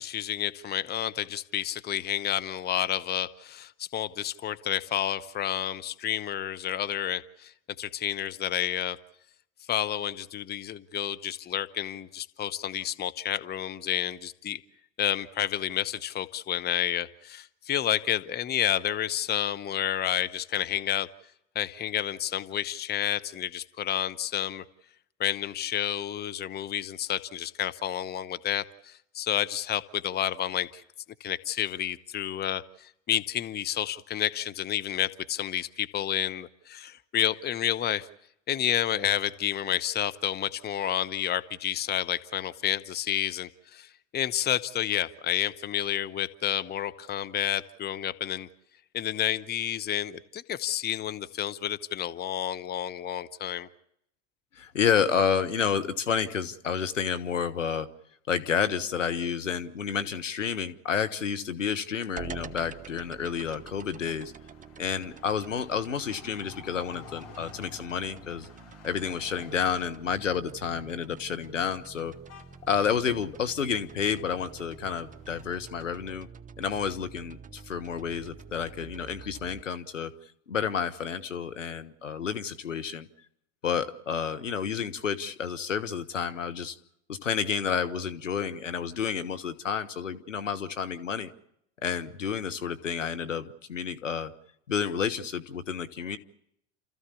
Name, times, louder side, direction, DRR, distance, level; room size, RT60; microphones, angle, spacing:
voice 1, 0.0-7.5 7.8-9.0 9.7-14.6 15.0-21.1 21.5-24.6 25.2-30.8 31.2-38.1 38.5-48.5 48.9-53.7, left 11 dB, 25° left, 12 dB, 1.0 m, -30 dB
voice 2, 54.5-57.9 58.3-64.3 64.8-68.5 68.8-72.1 72.7-76.3 76.6-80.1 80.5-83.1 83.6-86.7 87.1-91.3 91.8-94.3 94.7-96.2, left 7 dB, 90° left, 9 dB, 1.4 m, -30 dB
sound 1, 62.1-76.2, left 7 dB, 40° left, 6.3 m, -53 dB
sound 2, 62.2-79.6, right 6 dB, 20° right, 1.0 m, -47 dB
29.5 x 14.5 x 8.4 m, 0.76 s
hypercardioid pair, 85°, 37 cm